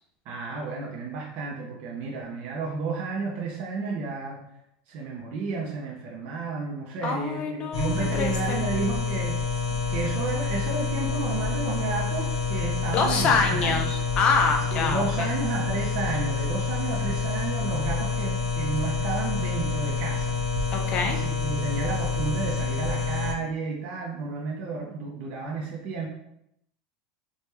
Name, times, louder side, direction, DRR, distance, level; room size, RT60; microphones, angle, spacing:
voice 1, 0.3-4.4 4.9-9.4 9.9-13.8 14.7-20.4 21.1-26.1, right 4 dB, 50° right, -2 dB, 0.5 m, -32 dB
voice 2, 7.0-8.6 12.9-15.3 20.7-21.2, left 4 dB, 35° left, 3 dB, 0.5 m, -26 dB
sound 1, 7.7-23.3, left 5 dB, 85° left, 0.8 m, -28 dB
3.2 x 2.2 x 2.9 m, 0.78 s
supercardioid pair, 155°, 3 cm